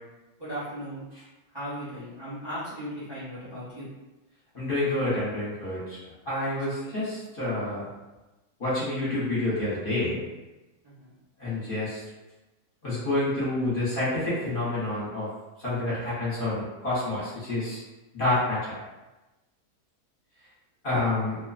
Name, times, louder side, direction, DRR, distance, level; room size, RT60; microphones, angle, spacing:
voice 1, 0.4-1.0 1.5-3.9 6.8-6.9 10.8-11.1, equal, 30° right, -11 dB, 0.5 m, -37 dB
voice 2, 4.5-6.0 6.2-7.9 8.6-10.2 11.4-12.0 12.8-15.3 15.6-17.8 18.1-18.8 20.8-21.4, left 2 dB, 40° left, -10 dB, 0.9 m, -28 dB
2.5 x 2.2 x 2.4 m, 1.1 s
omnidirectional pair, 1.6 m